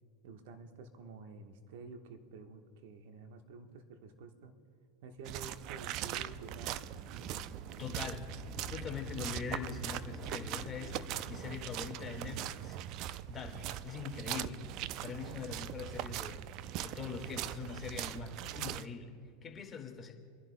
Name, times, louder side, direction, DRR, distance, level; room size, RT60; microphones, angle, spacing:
voice 1, 0.2-4.5 5.0-6.9 14.2-14.5, right 4 dB, 70° right, 6 dB, 1.2 m, -50 dB
sound 1, 5.2-18.9, right 12 dB, 50° right, 0.4 m, -41 dB
sound 2, 5.5-12.3, left 1 dB, 5° left, 1.4 m, -50 dB
voice 2, 7.8-8.3 8.7-11.0 11.3-12.8 13.3-14.6 15.0-16.4 16.8-19.1 19.4-20.1, left 6 dB, 25° left, 2 dB, 1.8 m, -42 dB
29.5 x 11.0 x 2.2 m, 2.6 s
hypercardioid pair, 95°, 0 cm